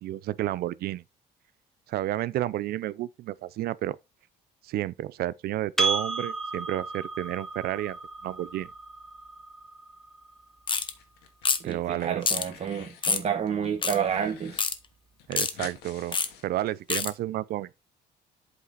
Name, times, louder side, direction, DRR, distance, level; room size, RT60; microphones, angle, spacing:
voice 1, 0.0-1.0 1.9-4.0 4.6-8.0 8.2-8.7 11.6-12.3 15.3-16.2 16.4-17.7, right 14 dB, 65° right, 0.5 m, -31 dB
Percussion, 5.8-10.6, right 3 dB, ahead, 1.5 m, -33 dB
sound 1, 10.7-10.9 11.4-11.7 12.2-12.5 13.0-13.3 13.8-14.0 14.6-14.8 15.3-15.5 16.1-16.3 16.9-17.1, left 5 dB, 30° left, 1.1 m, -26 dB
sound 2, 10.8-11.5 11.8-13.1 13.5-14.6 14.9-15.0 15.2-17.1, left 8 dB, 90° left, 1.7 m, -48 dB
voice 2, 11.6-14.6, right 8 dB, 40° right, 1.1 m, -29 dB
8.2 x 5.2 x 3.9 m
cardioid pair, 110°, 17 cm